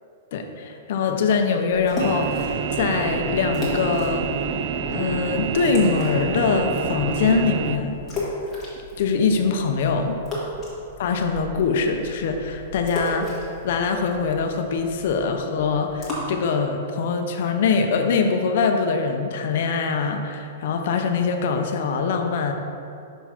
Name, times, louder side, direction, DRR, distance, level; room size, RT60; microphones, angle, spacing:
voice 1, 0.3-4.3 4.9-7.9 9.0-10.2 11.0-13.3 13.6-22.5, left 5 dB, 55° left, 4 dB, 0.6 m, -23 dB
sound 1, 1.7-16.2, left 2 dB, 10° left, 1.6 m, -35 dB
sound 2, 2.0-7.8, right 7 dB, 40° right, 0.4 m, -27 dB
5.6 x 4.5 x 5.9 m, 2.5 s
hypercardioid pair, 165°, 0 cm